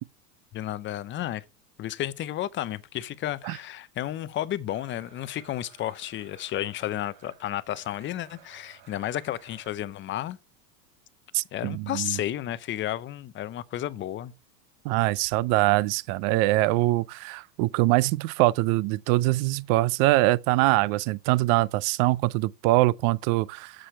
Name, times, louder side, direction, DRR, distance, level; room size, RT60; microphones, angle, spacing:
voice 1, 0.5-1.4 1.8-10.4 11.5-14.3, left 13 dB, 25° left, 0.5 m, -32 dB
Domestic sounds home sounds, 4.7-9.7, right 9 dB, 70° right, 3.6 m, -55 dB
voice 2, 11.3-12.2 14.8-23.7, right 19 dB, 45° right, 0.4 m, -23 dB
7.6 x 6.7 x 4.5 m
supercardioid pair, 115°, 49 cm